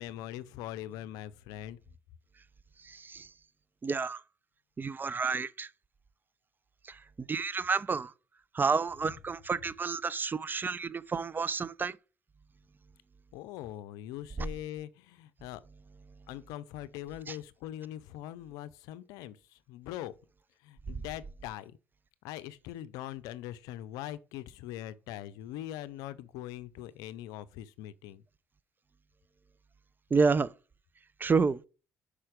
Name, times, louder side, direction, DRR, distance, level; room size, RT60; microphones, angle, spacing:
voice 1, 0.0-1.8 13.3-15.6 16.3-20.1 20.6-21.8 22.2-28.2, left 13 dB, 80° left, 0.5 m, -42 dB
voice 2, 2.8-3.3 3.8-4.2 4.8-5.7 6.8-8.1 8.5-12.0 14.4-14.5 17.3-17.4 30.1-30.5 31.2-31.6, right 4 dB, 30° right, 0.5 m, -30 dB
5.7 x 4.9 x 5.0 m
hypercardioid pair, 55°, 6 cm